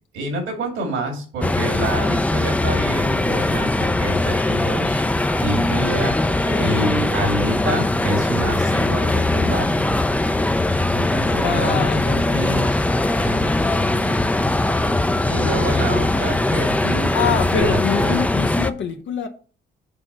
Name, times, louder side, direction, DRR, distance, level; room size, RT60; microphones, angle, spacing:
voice 1, 0.1-5.1 5.4-6.2 6.6-9.9 10.9-12.8 13.2-14.3 15.3-18.3, right 2 dB, 90° right, 2.6 m, -28 dB
sound 1, 1.4-18.7, left 2 dB, 5° left, 0.4 m, -20 dB
voice 2, 6.2-6.9 11.2-12.6 17.1-19.3, left 6 dB, 70° left, 0.9 m, -26 dB
6.7 x 3.6 x 6.2 m
cardioid pair, 90°, 20 cm